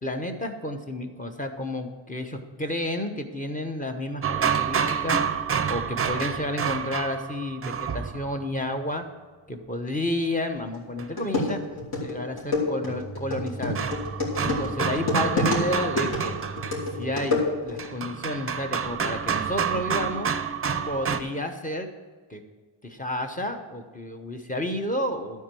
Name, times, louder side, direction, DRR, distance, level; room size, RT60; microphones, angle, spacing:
voice 1, 0.0-5.2 5.7-9.0 9.5-11.6 12.0-13.8 14.4-16.3 16.9-20.3 20.9-21.9 22.3-22.4 22.8-25.4, left 1 dB, 15° left, 5 dB, 1.0 m, -31 dB
sound 1, 4.2-8.5 11.0-11.1 12.8-21.2, right 7 dB, 30° right, 0.6 m, -29 dB
sound 2, 10.7-10.8 11.2-17.9, left 2 dB, 50° left, 3.2 m, -28 dB
12.0 x 4.6 x 7.6 m, 1.4 s
wide cardioid pair, 120°, 46 cm